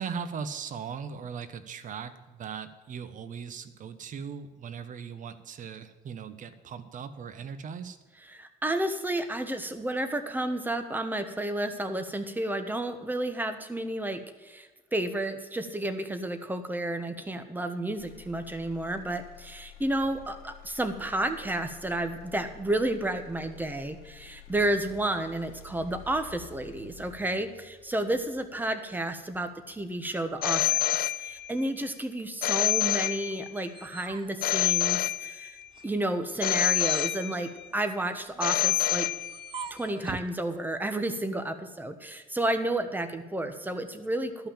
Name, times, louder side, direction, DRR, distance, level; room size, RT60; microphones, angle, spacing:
voice 1, 0.0-8.0, right 6 dB, 50° right, 11 dB, 1.1 m, -39 dB
voice 2, 8.3-35.6 35.8-39.1 39.7-44.5, right 1 dB, 10° right, 8 dB, 1.3 m, -31 dB
Motor vehicle (road), 18.0-32.0 32.5-33.0, left 6 dB, 80° left, 1.2 m, -51 dB
Telephone, 30.4-31.7 32.4-33.7 34.4-35.7 36.4-37.7 38.4-39.7, left 14 dB, 65° left, 0.5 m, -27 dB
sound 1, 33.3-35.3 35.7-40.4, right 6 dB, 30° right, 0.7 m, -44 dB
12.0 x 5.9 x 8.9 m, 1.3 s
cardioid pair, 110°, 17 cm